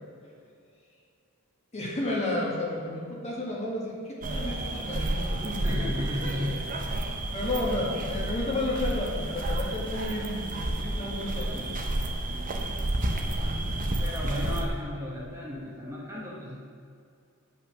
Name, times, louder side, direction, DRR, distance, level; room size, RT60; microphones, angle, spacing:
voice 1, 1.7-5.9 7.3-11.7, left 2 dB, 30° left, -4 dB, 1.9 m, -32 dB
sound 1, 4.2-14.7, right 1 dB, 40° right, 0.8 m, -30 dB
voice 2, 5.6-6.9 7.7-8.0 14.0-16.6, left 1 dB, 15° right, -4 dB, 1.1 m, -35 dB
9.4 x 5.7 x 6.1 m, 2.4 s
head